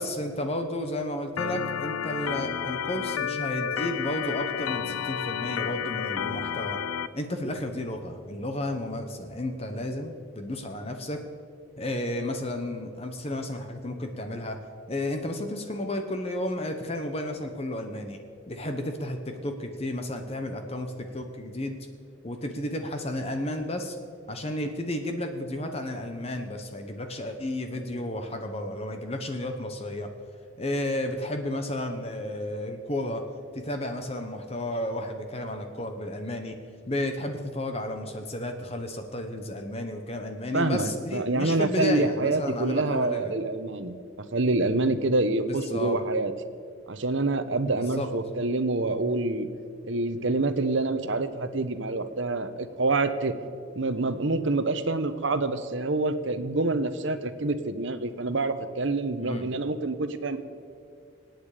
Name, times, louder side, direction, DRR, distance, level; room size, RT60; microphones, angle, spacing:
voice 1, 0.0-6.8 7.1-11.2 11.8-14.6 14.9-18.2 18.5-21.8 22.2-24.0 24.3-30.1 30.6-33.2 33.5-36.5 36.9-43.3 45.4-46.0 47.7-48.1 59.2-59.5, left 1 dB, 30° left, 5 dB, 1.0 m, -32 dB
Organ, 1.4-7.1, left 8 dB, 90° left, 0.5 m, -31 dB
voice 2, 40.5-43.9 44.3-46.3 46.9-49.5 49.8-53.3 53.7-60.4, right 2 dB, 65° right, 11 dB, 0.9 m, -26 dB
25.0 x 9.2 x 5.0 m, 2.4 s
head